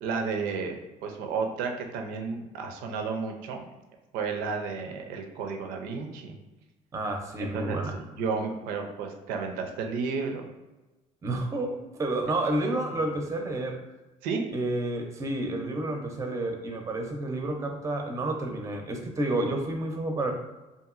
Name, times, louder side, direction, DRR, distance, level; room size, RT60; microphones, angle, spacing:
voice 1, 0.0-3.6 4.1-6.4 7.4-10.5 14.2-14.4, right 5 dB, 85° right, 4 dB, 0.5 m, -32 dB
voice 2, 6.9-8.0 11.2-13.8 14.5-20.3, right 2 dB, 20° right, 3 dB, 0.5 m, -30 dB
2.8 x 2.6 x 2.4 m, 1.1 s
cardioid pair, 100°, 14 cm